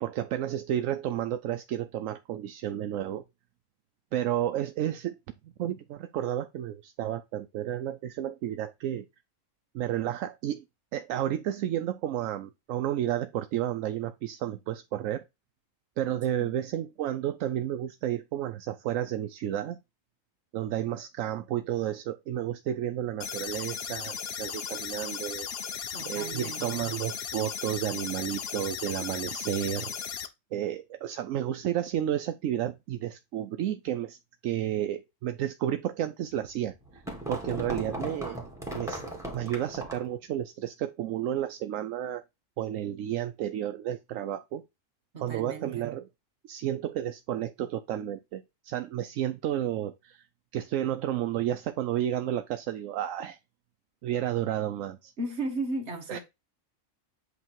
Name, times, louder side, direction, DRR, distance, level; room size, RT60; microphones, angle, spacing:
voice 1, 0.0-3.2 4.1-5.2 5.4-9.0 9.7-10.6 10.9-15.2 16.0-19.8 20.5-25.5 26.1-29.9 30.5-34.2 34.4-37.0 37.3-38.4 38.7-39.0 39.3-42.2 42.6-44.6 45.2-46.0 46.4-50.2 50.5-53.4 54.0-55.1 56.1-56.2, right 11 dB, 80° right, 1.0 m, -31 dB
sound 1, 23.2-30.3, left 7 dB, 55° left, 0.9 m, -36 dB
voice 2, 25.9-26.9 45.1-45.9 55.2-56.2, right 2 dB, 55° right, 1.7 m, -35 dB
sound 2, 36.6-40.2, right 1 dB, ahead, 1.8 m, -37 dB
8.2 x 3.0 x 4.5 m
omnidirectional pair, 1.4 m